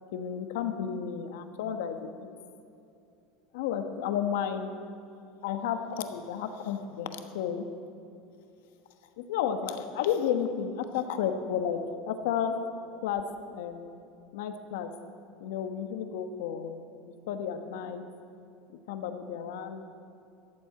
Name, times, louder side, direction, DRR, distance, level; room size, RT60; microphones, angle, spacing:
voice 1, 0.1-2.3 3.5-4.7 5.4-7.6 9.2-11.8 12.1-12.5 13.0-13.2 13.5-14.0 14.3-14.9 15.4-18.0 18.9-19.8, left 8 dB, 80° left, 8 dB, 1.2 m, -32 dB
14.5 x 7.7 x 9.1 m, 2.7 s
cardioid pair, 180°, 0 cm